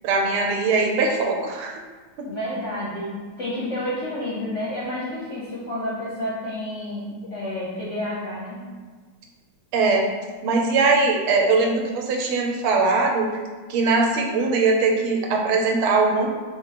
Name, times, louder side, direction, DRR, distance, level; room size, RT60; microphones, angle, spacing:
voice 1, 0.0-1.8 2.2-2.3 9.7-10.1 10.4-13.3 13.7-16.4, right 3 dB, 80° right, 1 dB, 1.5 m, -21 dB
voice 2, 2.3-8.6, left 1 dB, 55° left, -8 dB, 0.8 m, -30 dB
3.9 x 2.9 x 4.1 m, 1.5 s
omnidirectional pair, 2.4 m